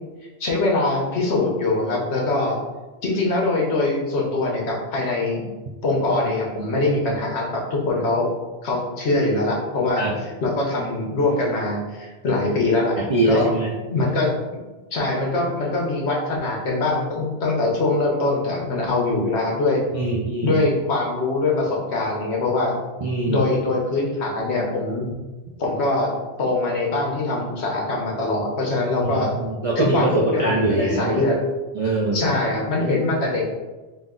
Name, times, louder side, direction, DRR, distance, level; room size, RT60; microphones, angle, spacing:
voice 1, 0.4-2.6 3.0-5.5 5.8-8.3 8.6-10.0 10.4-13.0 13.3-13.5 13.9-14.3 14.9-19.8 20.4-22.7 23.3-25.1 25.6-26.1 26.4-29.3 29.8-31.4 32.1-33.4, left 2 dB, 70° left, -2 dB, 1.1 m, -23 dB
voice 2, 13.0-13.7 19.9-20.6 23.0-23.5 29.0-31.2 31.7-32.3, right 2 dB, 55° right, -4 dB, 0.4 m, -23 dB
3.9 x 2.3 x 3.7 m, 1.2 s
omnidirectional pair, 1.2 m